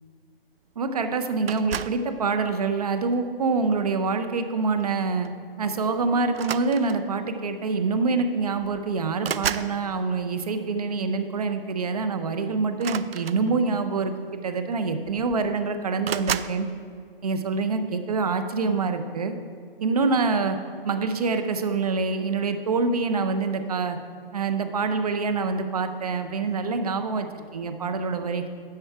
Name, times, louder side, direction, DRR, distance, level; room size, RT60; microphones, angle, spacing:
voice 1, 0.8-5.3 5.6-16.7 17.2-19.3 19.8-20.6 20.8-24.0 24.3-28.5, right 4 dB, 40° right, 8 dB, 0.7 m, -26 dB
sound 1, 1.5-2.1 3.0-3.3 4.8-5.0 5.2-5.4 6.3-7.2 8.2-8.3 8.6-9.8 12.7-13.8 14.7-14.8 15.1-15.6 16.0-16.6, right 9 dB, 80° right, 0.5 m, -32 dB
10.0 x 6.9 x 4.6 m, 2.2 s
hypercardioid pair, 165°, 29 cm